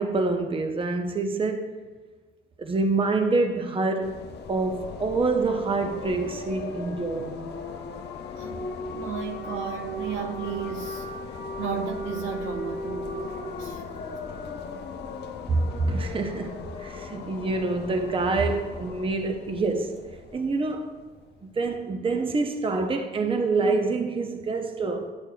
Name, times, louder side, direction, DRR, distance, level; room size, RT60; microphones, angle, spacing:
voice 1, 0.0-1.7 2.6-4.2 4.5-7.4 15.5-20.0 20.3-20.9 21.4-25.1, right 3 dB, 25° right, 0.6 m, -26 dB
sound 1, 4.0-21.9, left 6 dB, 60° left, 0.6 m, -43 dB
sound 2, 4.2-19.0, left 1 dB, 75° left, 1.0 m, -38 dB
voice 2, 8.4-11.1 11.6-13.3 13.6-13.8 21.0-21.1, right 7 dB, 80° right, 0.9 m, -34 dB
11.0 x 6.5 x 2.3 m
cardioid pair, 90°, 20 cm